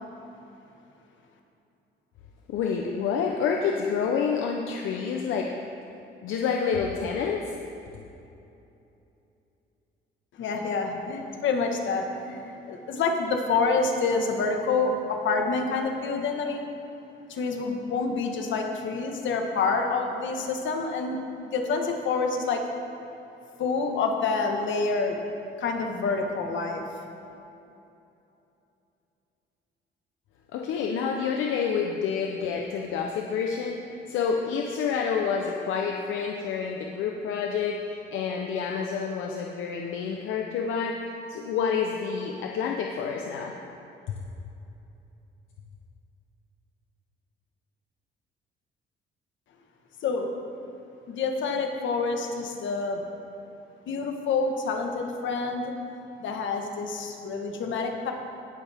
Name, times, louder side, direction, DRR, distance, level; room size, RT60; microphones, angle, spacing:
voice 1, 2.5-5.5 6.2-7.6 30.5-33.8 34.1-41.0 41.3-43.5, left 6 dB, 90° left, 1 dB, 0.8 m, -28 dB
voice 2, 10.3-16.6 17.3-22.6 23.6-25.2 25.6-26.9 50.0-50.3 51.1-53.0 53.9-55.7 56.2-58.1, left 4 dB, 75° left, 3 dB, 1.4 m, -27 dB
18.0 x 7.3 x 3.5 m, 2.8 s
cardioid pair, 90°, 20 cm